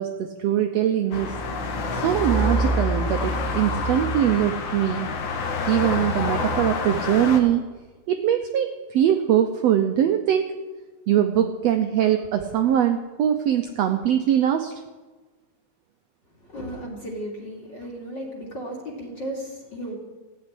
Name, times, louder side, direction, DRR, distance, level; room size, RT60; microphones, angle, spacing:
voice 1, 0.0-1.3 1.9-5.1 5.7-7.6 8.1-10.5 11.1-14.7, right 10 dB, 85° right, 6 dB, 1.4 m, -22 dB
sound 1, 1.1-7.4, left 2 dB, 60° left, 2.8 m, -26 dB
voice 2, 16.4-20.0, equal, 35° left, -2 dB, 3.2 m, -35 dB
15.5 x 8.5 x 10.0 m, 1.3 s
omnidirectional pair, 4.0 m